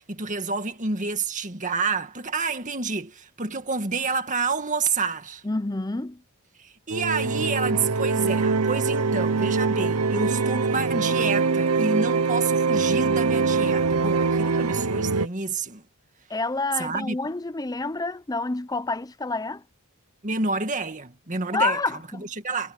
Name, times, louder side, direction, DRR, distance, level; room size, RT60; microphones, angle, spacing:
voice 1, 0.0-5.4 6.6-15.8 16.8-17.2 20.2-21.8 22.1-22.7, right 4 dB, 35° right, 2.0 m, -29 dB
voice 2, 5.4-6.2 16.3-19.6 21.5-22.3, left 3 dB, 15° left, 0.7 m, -28 dB
sound 1, 6.9-15.3, right 4 dB, 85° right, 0.9 m, -23 dB
head